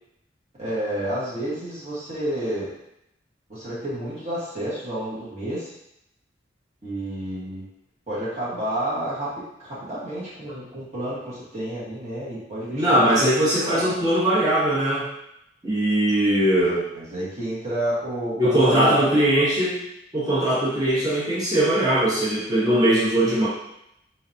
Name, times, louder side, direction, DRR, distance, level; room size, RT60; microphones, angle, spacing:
voice 1, 0.6-2.7 3.5-5.7 6.8-7.6 8.1-13.1 13.4-13.9 16.6-19.3, right 1 dB, 40° right, -9 dB, 1.4 m, -30 dB
voice 2, 12.7-15.1 15.6-16.8 18.4-19.8 20.1-23.5, right 1 dB, 20° right, -8 dB, 1.1 m, -20 dB
4.4 x 3.8 x 2.8 m, 0.80 s
head